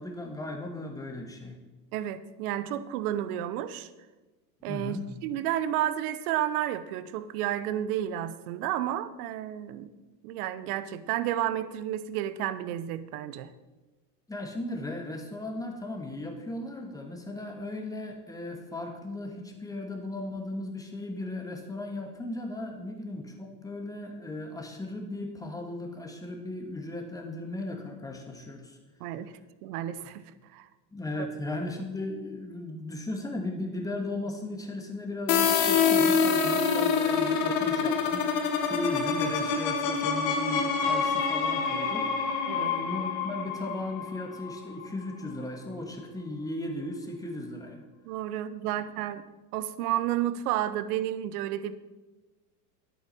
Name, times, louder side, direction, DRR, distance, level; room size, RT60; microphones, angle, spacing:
voice 1, 0.0-1.6 4.7-5.1 14.3-28.8 30.0-30.1 30.9-47.8, left 1 dB, 5° left, 3 dB, 1.6 m, -36 dB
voice 2, 1.9-3.9 4.6-5.0 5.2-9.9 10.2-13.5 29.0-29.3 29.6-30.7 31.2-31.3 42.5-42.8 48.0-49.2 49.5-51.8, right 12 dB, 60° right, 14 dB, 0.9 m, -31 dB
sound 1, 35.3-44.9, left 6 dB, 60° left, 1.8 m, -26 dB
11.0 x 8.6 x 4.2 m, 1.2 s
hypercardioid pair, 110°, 49 cm